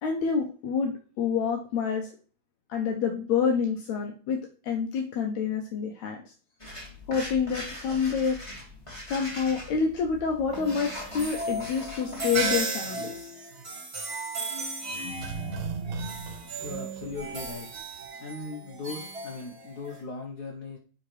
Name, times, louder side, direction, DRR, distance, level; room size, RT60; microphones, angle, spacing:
voice 1, 0.0-2.1 2.7-4.4 4.6-6.2 7.1-8.4 9.1-13.3, left 6 dB, 75° left, 2 dB, 2.1 m, -27 dB
sound 1, 6.6-12.6, left 1 dB, 10° left, 1.7 m, -41 dB
sound 2, 10.5-20.0, right 3 dB, 35° right, 1.7 m, -35 dB
sound 3, 14.9-17.8 18.0-18.1, right 4 dB, 70° right, 2.2 m, -37 dB
voice 2, 16.6-17.7 18.2-20.8, left 4 dB, 90° left, 0 dB, 0.8 m, -38 dB
9.8 x 3.8 x 3.2 m, 0.39 s
omnidirectional pair, 3.4 m